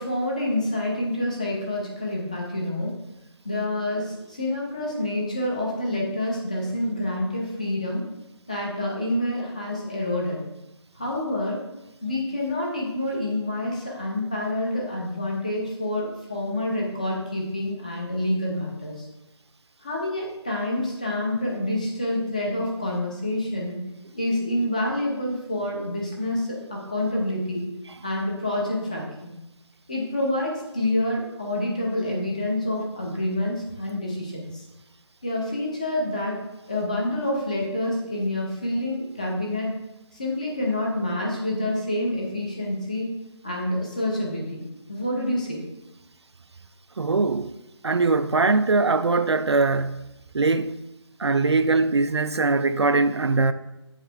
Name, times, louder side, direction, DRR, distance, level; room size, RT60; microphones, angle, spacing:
voice 1, 0.0-3.0 3.4-8.1 8.5-10.4 10.9-11.6 12.0-19.1 19.8-27.7 28.0-29.4 29.9-34.6 35.2-36.4 36.7-39.7 40.1-43.2 43.4-45.6, left 1 dB, 15° left, 0.7 m, -27 dB
voice 2, 47.0-47.5 47.8-50.1 50.3-50.8 51.2-53.5, right 3 dB, 65° right, 0.4 m, -21 dB
8.5 x 4.9 x 3.2 m
figure-of-eight pair, 175°, 15 cm